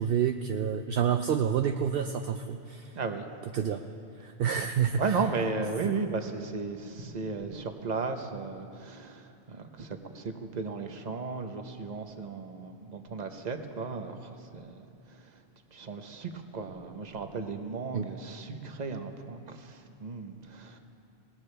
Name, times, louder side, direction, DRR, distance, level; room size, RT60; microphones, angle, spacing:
voice 1, 0.0-3.0 3.5-3.8 4.2-5.2 5.8-5.9 17.9-18.1, right 8 dB, 65° right, 7 dB, 0.7 m, -28 dB
voice 2, 2.9-3.3 5.0-15.4 15.7-20.8, right 4 dB, 40° right, 6 dB, 1.0 m, -35 dB
21.0 x 18.0 x 3.3 m, 2.6 s
omnidirectional pair, 1.1 m